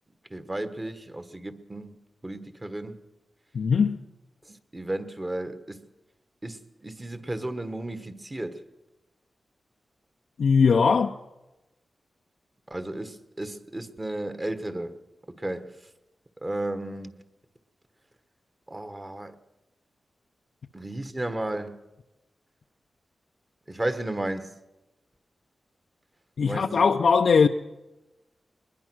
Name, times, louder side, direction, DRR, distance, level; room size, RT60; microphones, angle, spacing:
voice 1, 0.3-3.0 4.4-5.9 6.4-8.6 12.7-15.0 15.3-15.8 16.4-17.2 18.7-19.4 20.7-21.8 23.7-24.6 26.4-26.9, right 1 dB, 20° right, 1.4 m, -34 dB
voice 2, 3.5-4.0 10.4-11.2 26.4-27.5, left 5 dB, 75° left, 0.7 m, -20 dB
21.5 x 20.5 x 6.3 m
wide cardioid pair, 95°, 0 cm